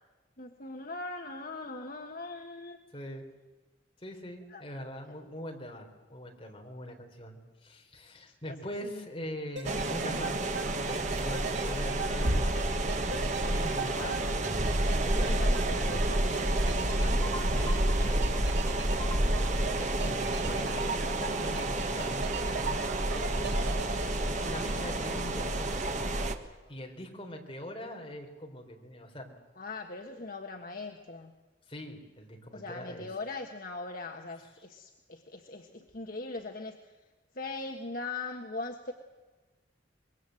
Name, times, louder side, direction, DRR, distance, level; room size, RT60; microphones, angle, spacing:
voice 1, 0.4-2.8 4.5-4.7 5.1-5.2 8.5-8.6 8.8-9.1 15.1-17.9 29.6-31.3 32.5-36.9 37.3-38.9, left 3 dB, 50° left, 3 dB, 1.4 m, -41 dB
voice 2, 2.9-3.3 4.0-14.3 15.0-15.4 17.2-23.7 24.3-25.8 26.7-29.3 30.1-30.3 31.7-33.1, equal, 30° left, 2 dB, 3.9 m, -43 dB
sound 1, 9.6-26.3, right 1 dB, 40° right, 1.5 m, -29 dB
sound 2, 9.6-25.5 25.8-25.9, right 4 dB, 70° right, 1.8 m, -40 dB
25.5 x 22.0 x 7.8 m, 1.2 s
head